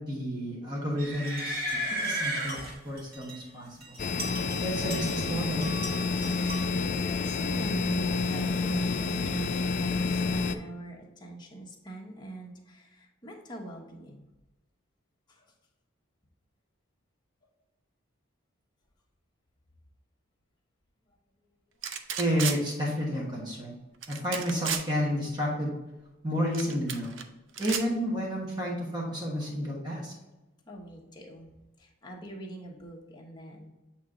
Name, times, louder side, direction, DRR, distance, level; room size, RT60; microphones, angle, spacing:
voice 1, 0.0-1.6 2.0-2.6 2.8-4.0 4.6-5.7 22.2-23.8 24.1-25.7 26.2-27.2 27.6-30.1, equal, 20° right, -3 dB, 1.2 m, -31 dB
sound 1, 1.0-3.4 3.8-5.3 5.6-6.9, equal, 50° right, 1.7 m, -35 dB
sound 2, 4.0-10.6, left 4 dB, 40° left, 0.4 m, -29 dB
voice 2, 6.5-14.3 15.3-15.5 29.4-29.5 30.7-31.5 31.8-33.7, right 1 dB, 20° left, -2 dB, 1.1 m, -44 dB
sound 3, 21.8-22.6 24.0-24.8 26.5-27.2 27.5-27.8, right 7 dB, 70° right, 0.6 m, -33 dB
8.4 x 3.0 x 3.7 m, 1.0 s
head